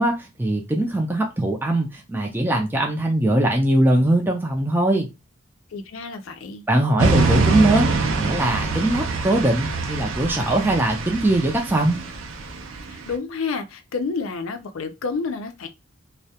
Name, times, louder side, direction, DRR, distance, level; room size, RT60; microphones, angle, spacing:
voice 1, 0.0-5.1 6.7-12.0, right 1 dB, 10° right, 0.4 m, -21 dB
voice 2, 5.7-6.6 12.9-15.7, left 4 dB, 85° left, 0.4 m, -29 dB
sound 1, 7.0-13.1, right 4 dB, 75° right, 0.4 m, -24 dB
2.3 x 2.0 x 2.7 m
head